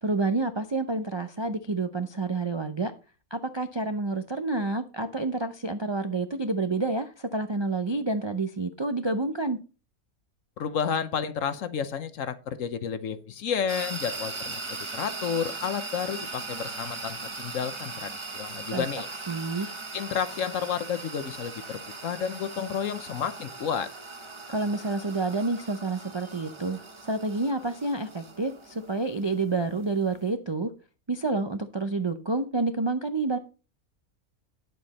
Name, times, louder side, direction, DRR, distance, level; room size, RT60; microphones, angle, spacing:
voice 1, 0.0-2.9 3.3-9.6 18.7-18.8 19.3-19.7 24.5-30.7 31.1-33.4, right 3 dB, 45° right, 0.3 m, -29 dB
voice 2, 10.6-19.1 19.9-23.9, left 7 dB, 65° left, 1.2 m, -31 dB
sound 1, 13.7-30.3, right 3 dB, 25° right, 0.8 m, -39 dB
9.5 x 7.7 x 4.1 m
omnidirectional pair, 1.5 m